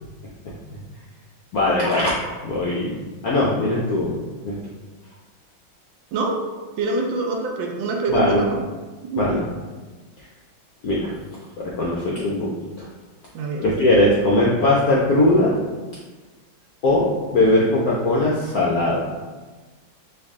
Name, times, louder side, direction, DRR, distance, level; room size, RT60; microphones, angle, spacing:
voice 1, 1.5-2.1 2.4-3.0 3.2-4.6 8.1-8.4 9.2-9.5 10.8-11.1 11.6-12.5 12.8-12.9 13.6-15.6 16.8-19.0, left 2 dB, 75° left, -5 dB, 0.8 m, -20 dB
voice 2, 6.8-8.6 9.1-9.2 13.3-13.6, right 3 dB, 75° right, 1 dB, 1.2 m, -24 dB
4.7 x 2.6 x 3.5 m, 1.3 s
omnidirectional pair, 2.2 m